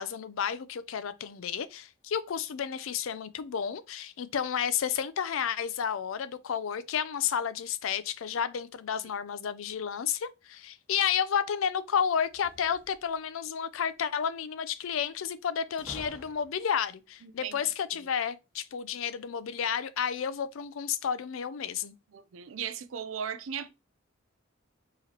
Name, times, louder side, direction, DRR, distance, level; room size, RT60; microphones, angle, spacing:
voice 1, 0.0-21.9, left 8 dB, 80° left, 0.4 m, -31 dB
sound 1, 12.3-13.3 15.8-16.8, equal, 10° right, 0.9 m, -49 dB
voice 2, 17.2-17.6 17.9-18.0 22.1-23.7, right 7 dB, 75° right, 0.5 m, -37 dB
4.7 x 3.0 x 2.9 m
head